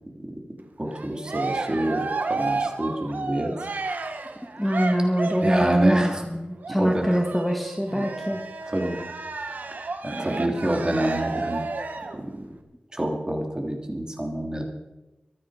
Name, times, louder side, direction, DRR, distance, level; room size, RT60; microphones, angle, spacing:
voice 1, 0.8-3.5 5.4-6.3 6.8-7.2 7.9-8.1 8.7-9.0 10.0-11.7 12.9-14.6, right 1 dB, 25° right, 2 dB, 3.1 m, -27 dB
Cheering, 0.9-5.9 6.6-12.2, right 3 dB, 75° right, 1.6 m, -32 dB
voice 2, 4.6-8.4 10.1-10.4, equal, 5° left, 2 dB, 1.7 m, -24 dB
24.0 x 9.6 x 5.0 m, 1.0 s
wide cardioid pair, 90°, 3 cm